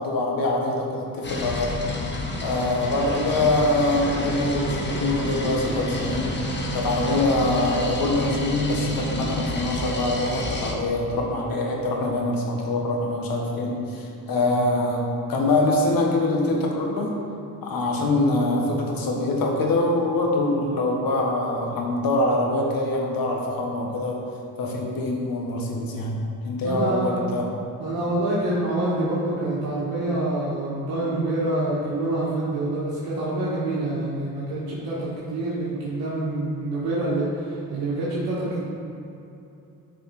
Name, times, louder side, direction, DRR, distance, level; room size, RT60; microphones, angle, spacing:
voice 1, 0.0-1.8 2.4-6.3 6.7-15.0 15.3-17.1 17.6-24.2 24.6-27.5, left 2 dB, 65° left, -1 dB, 1.5 m, -24 dB
sound 1, 1.2-10.7, left 1 dB, 30° left, 1.3 m, -29 dB
voice 2, 26.6-27.2 27.8-38.6, right 2 dB, 75° right, -7 dB, 1.6 m, -26 dB
7.9 x 5.1 x 4.2 m, 2.7 s
supercardioid pair, 70°, 37 cm